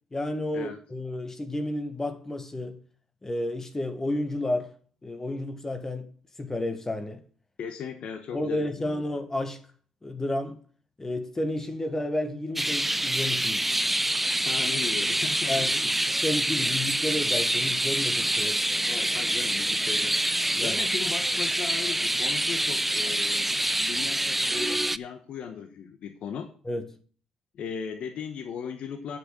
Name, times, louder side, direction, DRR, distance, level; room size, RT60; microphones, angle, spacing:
voice 1, 0.1-2.8 3.2-4.7 5.0-6.1 6.4-7.2 8.3-9.6 10.0-10.6 11.0-13.7 15.5-15.9 16.2-18.6 20.5-20.8 26.6-27.0, left 1 dB, 20° left, 1.6 m, -31 dB
voice 2, 7.6-9.1 14.4-15.9 18.8-20.2 20.6-26.5 27.5-29.2, left 7 dB, 65° left, 1.3 m, -37 dB
sound 1, 12.6-25.0, right 1 dB, 10° right, 0.5 m, -26 dB
8.2 x 6.2 x 7.6 m
supercardioid pair, 65°, 2 cm